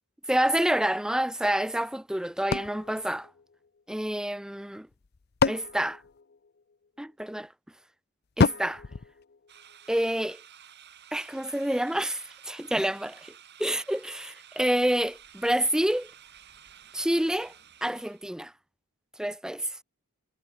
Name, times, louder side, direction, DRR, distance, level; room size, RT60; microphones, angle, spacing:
voice 1, 0.3-3.3 3.9-4.9 5.4-6.0 7.0-7.5 8.4-8.8 9.9-10.4 11.1-13.3 13.6-16.1 16.9-17.5 17.8-18.5 19.2-19.7, right 1 dB, 5° right, 0.3 m, -28 dB
sound 1, 2.5-4.1 4.9-6.9 8.4-10.0, left 4 dB, 45° left, 0.5 m, -30 dB
sound 2, 9.5-18.3, right 9 dB, 50° right, 7.7 m, -52 dB
head